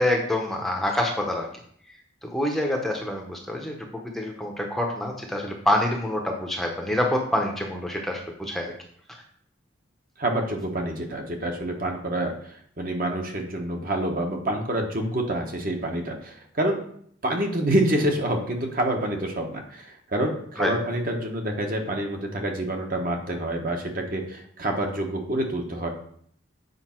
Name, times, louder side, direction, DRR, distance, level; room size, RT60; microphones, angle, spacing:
voice 1, 0.0-1.5 2.2-8.7 20.6-20.7, left 1 dB, ahead, 1 dB, 0.8 m, -26 dB
voice 2, 10.2-12.3 12.8-16.8 17.2-25.9, right 1 dB, 45° right, 2 dB, 1.2 m, -27 dB
7.9 x 5.2 x 4.4 m, 0.63 s
head